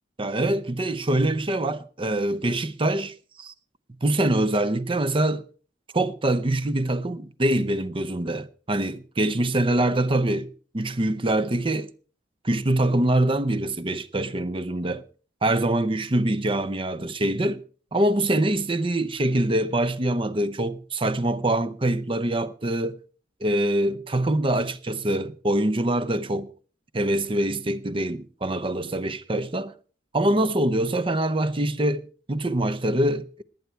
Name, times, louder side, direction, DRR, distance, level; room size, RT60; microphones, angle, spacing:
voice 1, 0.2-3.5 4.0-5.4 5.9-11.9 12.4-15.0 15.4-17.6 17.9-23.0 23.4-26.5 26.9-29.7 30.1-33.4, right 1 dB, 30° right, 0.7 m, -24 dB
19.5 x 9.3 x 4.5 m
head